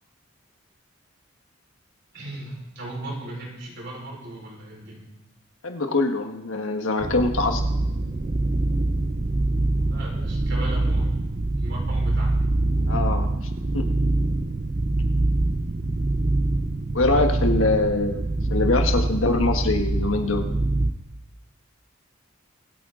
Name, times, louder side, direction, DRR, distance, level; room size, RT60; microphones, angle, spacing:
voice 1, 2.1-5.0 9.9-11.1 11.5-12.4, right 1 dB, 60° right, -1 dB, 4.7 m, -36 dB
voice 2, 5.6-7.6 12.9-13.3 13.7-13.9 16.9-20.4, left 3 dB, 85° left, 5 dB, 1.5 m, -23 dB
sound 1, 7.0-20.9, right 2 dB, 35° right, 0.7 m, -24 dB
24.5 x 9.1 x 3.8 m, 0.92 s
head